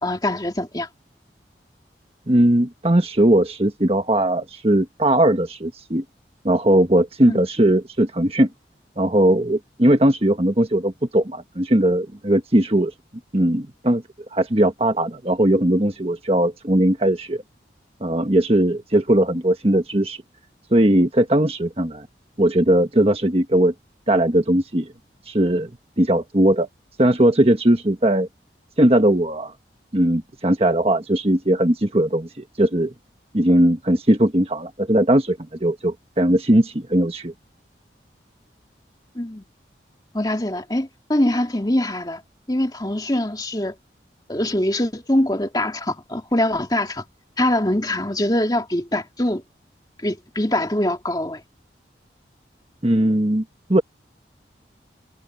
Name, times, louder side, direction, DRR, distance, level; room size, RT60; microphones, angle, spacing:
voice 1, 0.0-0.9 7.3-7.4 39.1-39.4 40.1-42.2 42.5-43.7 44.3-47.0 47.4-49.4 50.0-51.4, left 1 dB, 20° left, 2.5 m, -23 dB
voice 2, 2.3-6.0 6.4-8.5 9.0-12.9 13.3-14.0 14.3-17.4 18.0-20.2 20.7-22.1 22.4-23.7 24.1-24.9 25.3-25.7 26.0-26.7 27.0-28.3 28.8-29.5 29.9-32.9 33.3-37.3 52.8-53.4 53.7-53.8, right 1 dB, 35° right, 1.5 m, -19 dB
head